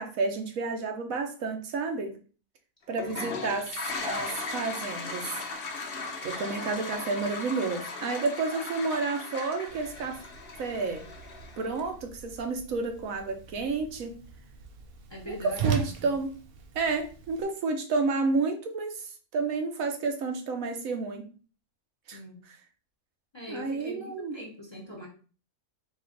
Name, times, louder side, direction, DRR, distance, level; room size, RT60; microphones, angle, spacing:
voice 1, 0.0-2.1 2.9-3.7 4.0-5.3 6.2-10.2 10.6-11.0 11.6-14.1 15.3-16.3 16.7-21.3 22.1-22.2 23.5-24.3, right 4 dB, 75° right, 4 dB, 1.2 m, -30 dB
Toilet flush, 2.9-11.8, left 3 dB, 55° left, 0.8 m, -37 dB
voice 2, 3.0-3.3 15.1-16.2 22.1-22.4 23.3-25.1, left 1 dB, 25° left, -2 dB, 0.8 m, -42 dB
Whoosh swoosh swish, 9.7-17.4, right 7 dB, 60° right, 0.6 m, -38 dB
4.2 x 2.5 x 3.8 m, 0.38 s
omnidirectional pair, 1.4 m